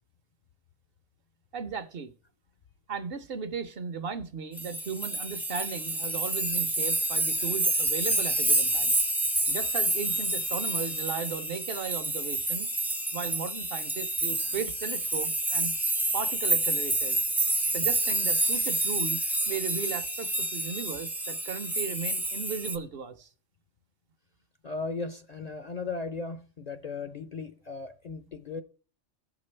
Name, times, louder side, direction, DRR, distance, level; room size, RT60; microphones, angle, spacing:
voice 1, 1.5-2.1 2.9-9.0 9.5-12.7 13.1-15.7 16.1-17.2 17.7-19.2 19.5-23.3, right 6 dB, 55° right, 0.9 m, -36 dB
sound 1, 4.6-22.8, right 2 dB, 5° right, 0.3 m, -28 dB
voice 2, 24.6-28.6, left 4 dB, 45° left, 0.5 m, -36 dB
16.0 x 6.0 x 3.2 m
omnidirectional pair, 1.2 m